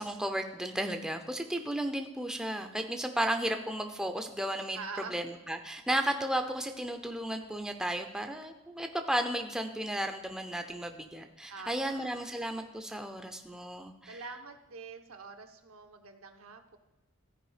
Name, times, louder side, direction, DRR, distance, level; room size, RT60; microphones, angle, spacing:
voice 1, 0.0-4.8 5.1-14.2, right 1 dB, 5° right, 5 dB, 0.5 m, -34 dB
voice 2, 4.7-5.2 11.5-12.3 14.1-16.8, right 4 dB, 70° right, 6 dB, 0.9 m, -45 dB
14.0 x 4.8 x 4.9 m, 1.1 s
head